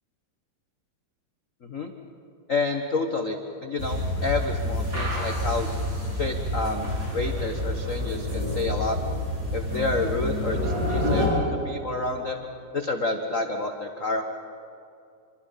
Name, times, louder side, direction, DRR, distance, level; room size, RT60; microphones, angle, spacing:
voice 1, 1.6-1.9 2.5-5.7 6.1-9.0 9.5-12.4 12.7-14.3, left 3 dB, 65° left, 4 dB, 0.7 m, -29 dB
sound 1, 3.8-11.3, left 1 dB, 25° right, 8.1 m, -28 dB
27.5 x 25.0 x 5.7 m, 2.5 s
omnidirectional pair, 3.3 m